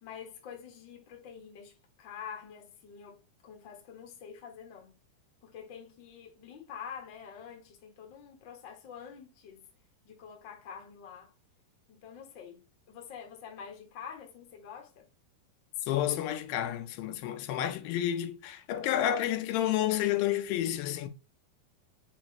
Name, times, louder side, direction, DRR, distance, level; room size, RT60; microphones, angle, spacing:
voice 1, 0.0-4.9 5.4-9.6 10.0-11.3 11.9-15.1 15.8-16.4, left 7 dB, 70° left, 1.1 m, -47 dB
voice 2, 15.9-21.1, left 11 dB, 90° left, 2.5 m, -30 dB
5.8 x 2.9 x 2.8 m
omnidirectional pair, 4.1 m